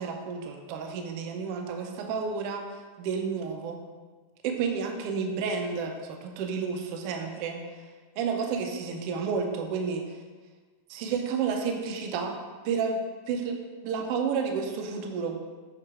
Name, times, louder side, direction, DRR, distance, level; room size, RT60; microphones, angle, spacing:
voice 1, 0.0-3.8 4.4-7.6 8.2-10.2 10.9-12.4 12.6-13.6 13.8-15.4, right 5 dB, 80° right, 3 dB, 1.3 m, -31 dB
7.6 x 2.9 x 4.7 m, 1.4 s
omnidirectional pair, 3.4 m